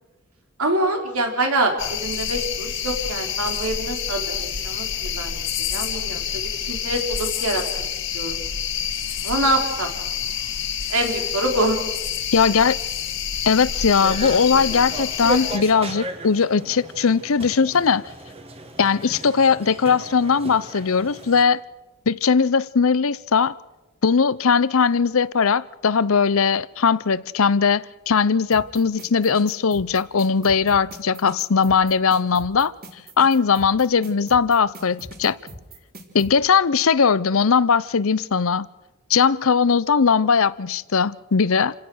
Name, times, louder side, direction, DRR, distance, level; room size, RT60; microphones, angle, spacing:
voice 1, 0.6-6.4 6.7-7.6 8.1-8.4 9.2-9.9 10.9-11.8, right 1 dB, 85° right, 4.2 m, -25 dB
sound 1, 1.8-15.6, left 8 dB, 60° left, 1.8 m, -28 dB
voice 2, 12.3-12.8 13.5-18.0 18.8-21.6 22.1-23.5 24.0-32.7 33.2-35.4 36.1-38.7 39.1-41.7, left 5 dB, 75° left, 0.7 m, -19 dB
sound 2, 14.0-21.4, right 2 dB, 25° right, 1.9 m, -35 dB
sound 3, 28.5-36.3, right 1 dB, 45° right, 3.8 m, -40 dB
28.5 x 17.0 x 6.4 m
head